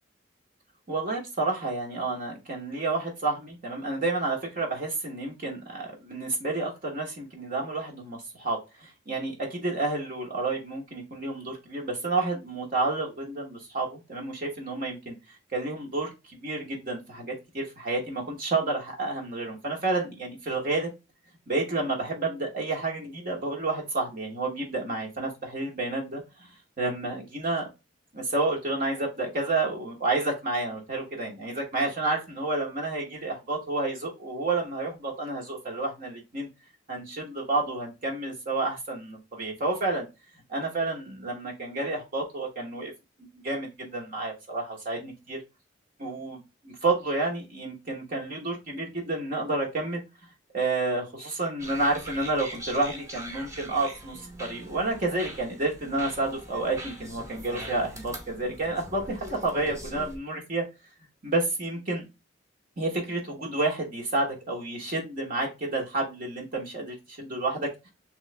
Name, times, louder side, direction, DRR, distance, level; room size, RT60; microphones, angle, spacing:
voice 1, 0.9-15.1 15.5-20.9 21.5-26.2 26.8-27.7 28.1-36.5 36.9-40.1 40.5-42.9 43.4-45.4 46.0-50.0 50.5-60.7 61.2-62.1 62.8-67.9, right 2 dB, 45° right, -1 dB, 1.1 m, -30 dB
sound 1, 51.6-60.2, right 1 dB, 15° right, 1.0 m, -42 dB
3.1 x 3.0 x 3.2 m, 0.24 s
head